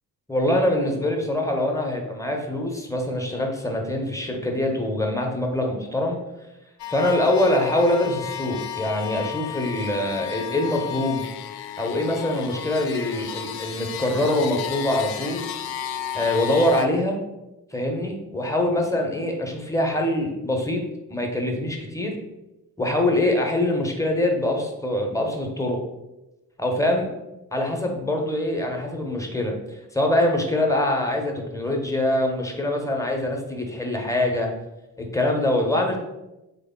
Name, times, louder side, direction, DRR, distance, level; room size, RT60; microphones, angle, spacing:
voice 1, 0.3-6.2 6.9-11.2 11.8-15.5 16.1-17.2 17.7-20.8 21.1-22.1 22.8-25.8 26.6-27.1 27.5-29.6 29.9-34.5 35.0-36.0, left 1 dB, 5° left, 2 dB, 0.6 m, -24 dB
sound 1, 6.8-16.9, left 10 dB, 55° left, 0.5 m, -33 dB
3.3 x 2.1 x 3.6 m, 0.98 s
hypercardioid pair, 40°, 50 cm